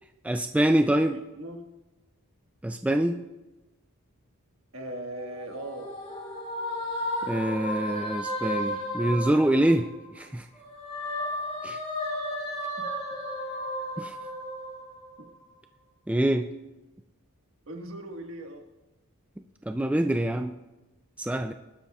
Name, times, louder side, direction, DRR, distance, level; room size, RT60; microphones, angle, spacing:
voice 1, 0.2-1.2 2.6-3.2 7.3-9.9 10.2-10.5 11.6-11.8 14.0-14.1 16.1-16.5 19.7-20.5 21.2-21.5, right 1 dB, 5° right, 7 dB, 0.3 m, -25 dB
voice 2, 1.1-1.6 4.7-5.9 12.8-12.9 17.7-18.7, right 1 dB, 65° right, 2 dB, 1.6 m, -39 dB
sound 1, 5.2-10.2 10.5-15.3, left 1 dB, 30° left, 2.6 m, -34 dB
20.0 x 12.0 x 2.4 m, 1.1 s
head